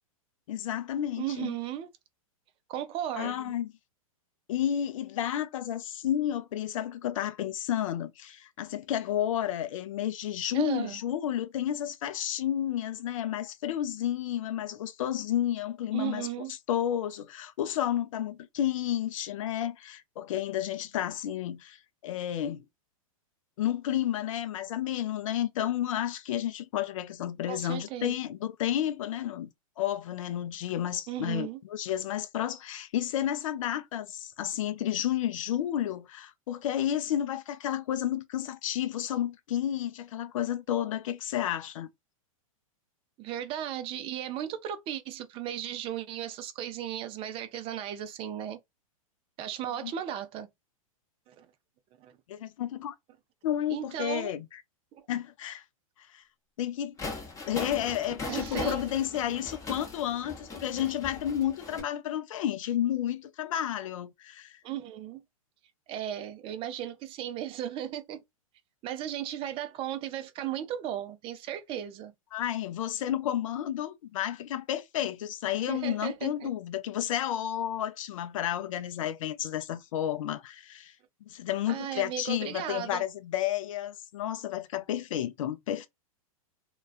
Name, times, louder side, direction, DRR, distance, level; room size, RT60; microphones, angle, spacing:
voice 1, 0.5-1.6 3.2-3.7 4.5-16.3 16.7-22.7 23.6-29.5 29.8-41.9 49.8-49.9 52.3-52.9 53.4-54.6 55.1-55.6 56.1-56.2 56.6-57.0 57.5-64.6 72.3-80.9 81.3-85.9, left 11 dB, 65° left, 0.5 m, -31 dB
voice 2, 1.2-1.9 2.7-3.5 10.5-11.0 15.9-16.5 27.5-28.1 31.1-31.6 43.2-48.6 49.4-50.5 51.3-51.5 52.0-52.1 53.7-54.3 54.9-55.0 58.3-58.8 64.6-65.2 65.9-68.2 68.8-72.1 75.7-76.5 81.7-83.0, right 11 dB, 30° right, 0.5 m, -36 dB
sound 1, 57.0-61.8, left 3 dB, 15° left, 0.8 m, -39 dB
2.3 x 2.2 x 2.4 m
hypercardioid pair, 115°, 18 cm